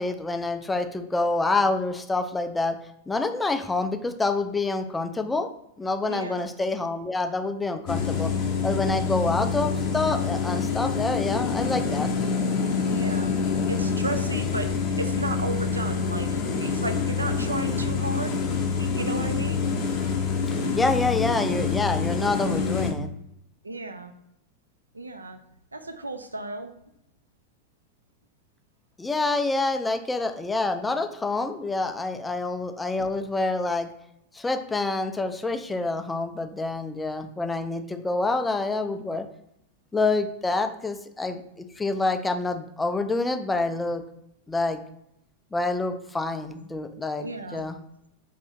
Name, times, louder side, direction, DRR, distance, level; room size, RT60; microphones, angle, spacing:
voice 1, 0.0-2.8 3.1-5.5 5.8-8.3 8.6-12.1 20.5-23.1 29.0-33.9 34.3-39.3 39.9-41.4 41.8-44.0 44.5-44.8 45.5-47.8, left 3 dB, 10° left, 7 dB, 0.3 m, -27 dB
voice 2, 6.0-6.5 9.1-9.2 12.9-13.3 13.7-18.4 18.8-19.6 23.6-24.1 24.9-25.4 25.7-26.7 47.2-47.7, right 2 dB, 80° right, 7 dB, 0.3 m, -34 dB
sound 1, 7.9-22.9, left 5 dB, 40° left, 0.6 m, -26 dB
2.7 x 2.5 x 3.5 m, 0.79 s
figure-of-eight pair, 90°, 0 cm